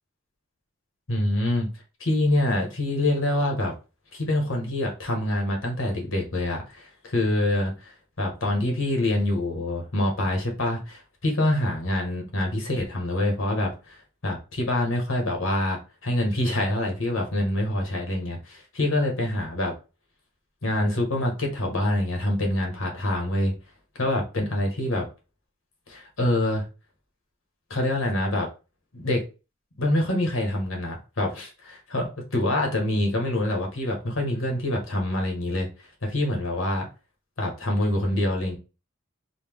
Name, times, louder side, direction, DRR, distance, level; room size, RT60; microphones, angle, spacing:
voice 1, 1.1-1.7 2.0-3.7 4.1-7.9 8.2-14.0 14.2-19.7 20.6-23.5 24.0-25.1 25.9-26.6 27.7-28.5 28.9-29.2 29.8-35.7 36.0-36.9 37.4-38.6, left 1 dB, 90° left, 1.4 m, -25 dB
4.1 x 2.3 x 3.5 m
head